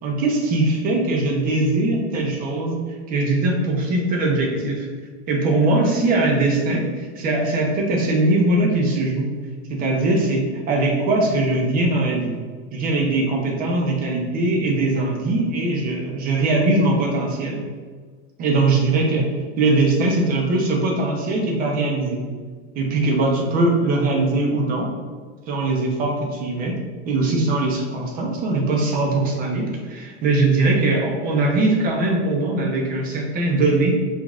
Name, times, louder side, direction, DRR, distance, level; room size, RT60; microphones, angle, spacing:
voice 1, 0.0-2.8 3.1-4.9 5.3-9.3 9.7-12.3 12.7-17.7 18.4-22.3 22.7-24.9 25.5-26.8 27.0-34.0, right 2 dB, 25° right, 0 dB, 0.6 m, -21 dB
4.9 x 3.1 x 2.4 m, 1.6 s
supercardioid pair, 160°, 33 cm